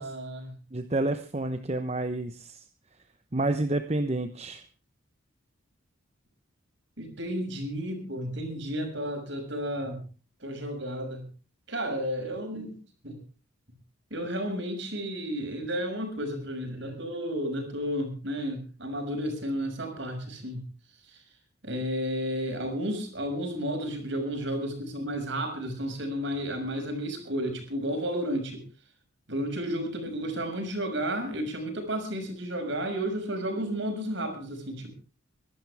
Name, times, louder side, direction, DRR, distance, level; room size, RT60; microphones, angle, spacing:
voice 1, 0.0-0.5 7.0-10.1 10.4-11.3 11.7-12.8 13.0-13.2 14.1-20.7 21.1-21.2 21.6-28.7 29.3-34.9, equal, 55° right, 4 dB, 6.3 m, -32 dB
voice 2, 0.7-2.7 3.3-4.6, right 2 dB, 30° right, 8 dB, 1.0 m, -29 dB
24.0 x 12.5 x 3.5 m, 0.36 s
head